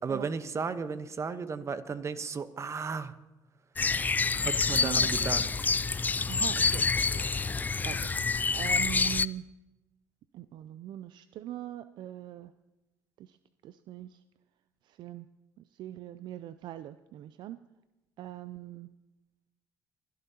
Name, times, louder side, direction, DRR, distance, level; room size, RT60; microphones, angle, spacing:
voice 1, 0.0-3.1 4.4-5.5, right 5 dB, 35° right, 12 dB, 1.0 m, -34 dB
sound 1, 3.8-9.3, left 4 dB, 20° left, 0.3 m, -27 dB
voice 2, 4.7-5.1 6.3-6.9 7.3-8.1 8.5-9.5 10.3-12.5 13.2-13.4 13.6-14.2 14.9-15.3 15.8-17.6 18.2-18.9, right 12 dB, 60° right, 13 dB, 0.4 m, -41 dB
23.0 x 12.5 x 2.9 m, 1.0 s
supercardioid pair, 75°, 9 cm